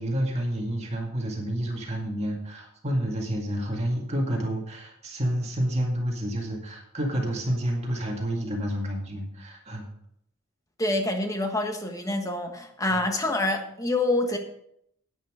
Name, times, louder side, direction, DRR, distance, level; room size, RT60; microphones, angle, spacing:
voice 1, 0.0-9.8 12.9-13.0, equal, 30° right, 0 dB, 2.1 m, -29 dB
voice 2, 10.8-14.4, left 2 dB, 15° left, 4 dB, 1.3 m, -26 dB
10.5 x 9.5 x 5.0 m, 0.72 s
head